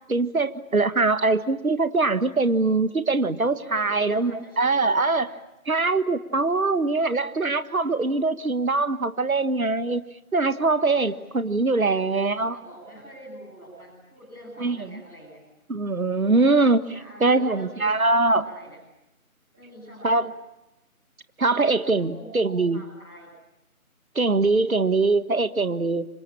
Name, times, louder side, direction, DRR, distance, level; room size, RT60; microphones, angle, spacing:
voice 1, 0.1-5.3 5.7-10.0 10.3-12.5 14.6-14.9 15.7-16.8 17.2-18.4 20.0-20.3 21.4-22.8 24.1-26.1, right 3 dB, 70° right, 13 dB, 1.6 m, -22 dB
voice 2, 3.6-5.3 10.9-11.2 11.8-12.0 12.5-15.4 16.9-18.8 19.5-20.2 21.9-23.3, equal, ahead, -12 dB, 1.3 m, -45 dB
29.5 x 25.5 x 7.3 m, 0.95 s
figure-of-eight pair, 165°, 44 cm